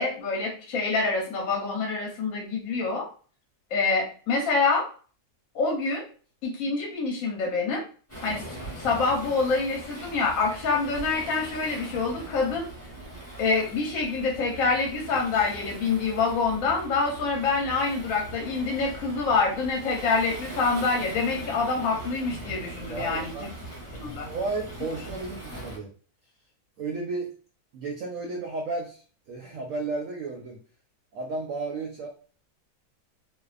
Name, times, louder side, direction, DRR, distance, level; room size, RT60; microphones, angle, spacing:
voice 1, 0.0-3.1 3.7-4.9 5.5-6.1 6.4-7.8 8.2-12.7 13.4-23.3 23.9-24.3, left 4 dB, 65° left, 0 dB, 1.0 m, -26 dB
Waves surf, 8.1-25.8, right 1 dB, 10° left, 0.9 m, -41 dB
voice 2, 22.9-23.5 24.0-25.9 26.8-27.3 27.7-30.6 31.1-32.1, right 3 dB, 70° right, 0 dB, 0.8 m, -33 dB
2.6 x 2.1 x 2.4 m, 0.40 s
omnidirectional pair, 1.7 m